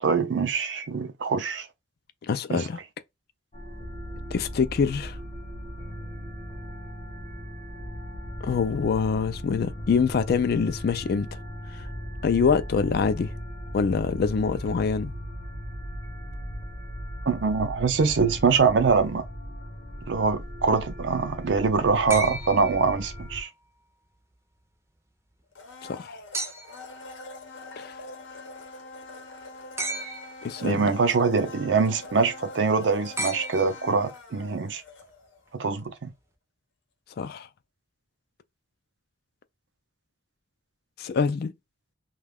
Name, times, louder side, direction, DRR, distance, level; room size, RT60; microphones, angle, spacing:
voice 1, 0.0-1.7 2.5-2.7 17.3-19.3 20.1-23.5 30.6-34.8 35.5-36.1, right 5 dB, 70° right, 0.5 m, -24 dB
voice 2, 2.2-2.8 4.3-5.2 8.4-11.3 12.2-13.3 13.7-15.1 25.8-26.2 27.8-27.9 30.4-30.9 37.2-37.5 41.0-41.5, left 5 dB, 55° left, 0.3 m, -25 dB
sound 1, 3.5-23.4, equal, 35° left, 0.7 m, -37 dB
sound 2, 22.1-23.5 26.3-27.0 29.8-30.6 33.2-34.2 35.8-35.9, right 2 dB, 15° right, 0.5 m, -34 dB
Domestic sounds home sounds, 25.5-35.5 35.8-35.9, left 2 dB, 85° left, 0.8 m, -43 dB
2.3 x 2.3 x 3.4 m
head